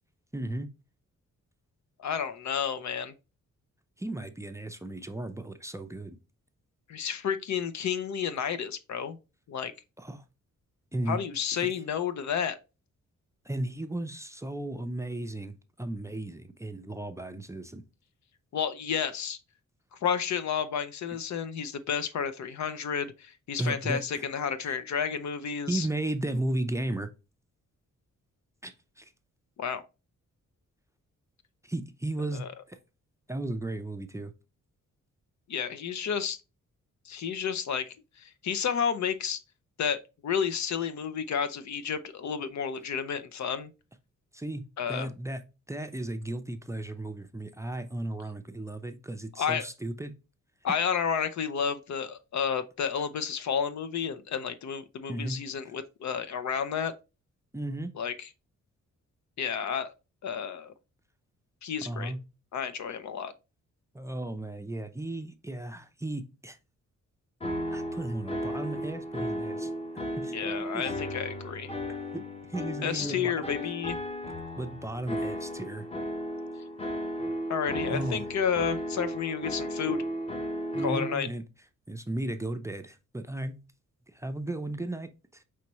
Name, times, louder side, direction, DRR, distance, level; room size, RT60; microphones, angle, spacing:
voice 1, 0.3-0.7 4.0-6.2 10.0-10.2 10.9-11.2 13.4-17.8 23.6-24.2 24.6-24.8 25.7-27.1 28.6-29.1 31.6-32.8 33.3-34.3 44.3-44.6 44.9-45.4 45.7-50.2 55.1-55.4 57.5-57.9 61.8-62.2 63.9-66.6 67.7-69.7 70.2-70.4 70.7-70.9 72.1-72.2 72.5-73.3 74.6-75.9 77.9-78.2 80.7-81.4 81.9-83.6 84.1-85.4, right 1 dB, 10° right, 0.5 m, -35 dB
voice 2, 2.0-3.1 6.9-9.2 9.5-9.7 11.1-12.6 18.5-19.4 20.0-25.9 29.6-29.8 32.3-32.5 35.5-36.4 37.1-39.4 39.8-43.7 44.8-45.1 49.4-49.7 50.6-56.9 58.0-58.3 59.4-59.9 60.2-60.7 61.6-62.1 62.5-63.3 70.3-71.7 72.8-74.0 77.5-80.0 80.8-81.3, left 7 dB, 65° left, 0.6 m, -31 dB
sound 1, 67.4-81.1, equal, 20° left, 0.8 m, -34 dB
5.7 x 3.1 x 3.0 m
cardioid pair, 90°, 30 cm